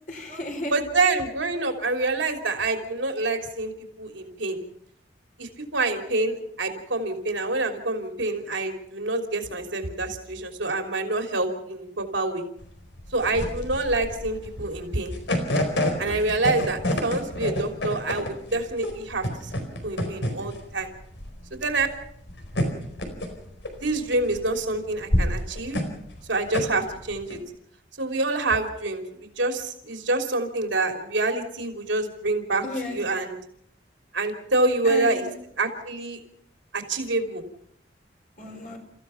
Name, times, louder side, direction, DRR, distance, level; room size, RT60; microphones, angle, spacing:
voice 1, 0.1-0.7 32.6-33.0 34.8-35.3 38.4-38.8, left 2 dB, 45° left, 4 dB, 3.9 m, -33 dB
voice 2, 0.6-4.6 5.4-12.4 13.1-15.1 16.0-19.5 19.8-20.9 21.5-21.9 23.8-25.8 26.3-27.4 28.0-33.3 34.1-35.3 35.6-36.2 36.7-37.4, right 2 dB, 85° right, 5 dB, 3.3 m, -27 dB
sound 1, 12.6-27.4, left 1 dB, 80° left, 4.5 m, -29 dB
30.0 x 15.0 x 5.8 m, 0.69 s
head